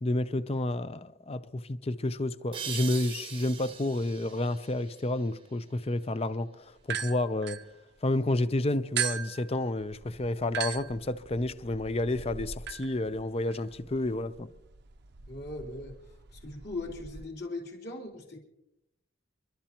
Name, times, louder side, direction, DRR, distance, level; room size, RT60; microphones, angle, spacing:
voice 1, 0.0-6.5 6.9-7.6 8.0-14.5, left 2 dB, 30° left, 0.6 m, -30 dB
sound 1, 2.5-5.9, right 7 dB, 25° right, 0.9 m, -42 dB
sound 2, 6.8-8.3 9.0-17.2, right 8 dB, 55° right, 0.7 m, -39 dB
voice 2, 15.3-16.0 16.3-18.4, left 2 dB, 55° left, 3.7 m, -39 dB
30.0 x 12.5 x 3.0 m
head